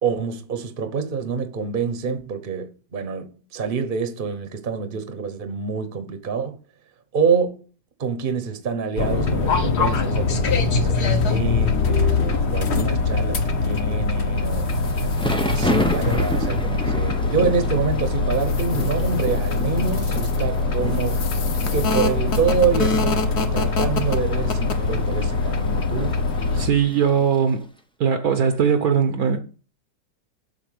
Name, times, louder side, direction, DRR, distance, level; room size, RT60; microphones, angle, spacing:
voice 1, 0.0-6.6 7.1-7.6 8.0-14.7 15.4-21.2 21.7-26.2, right 6 dB, 35° right, 1.0 m, -26 dB
sound 1, 9.0-26.7, left 4 dB, 45° left, 1.2 m, -22 dB
sound 2, 13.4-13.5 14.0-16.9 17.3-17.4 17.9-20.6 20.9-22.9, left 7 dB, 85° left, 1.9 m, -42 dB
Thunder / Rain, 14.5-27.5, left 1 dB, 10° left, 0.3 m, -32 dB
voice 2, 26.6-27.7 28.0-29.4, right 7 dB, 65° right, 1.2 m, -20 dB
8.0 x 5.7 x 7.8 m
omnidirectional pair, 1.9 m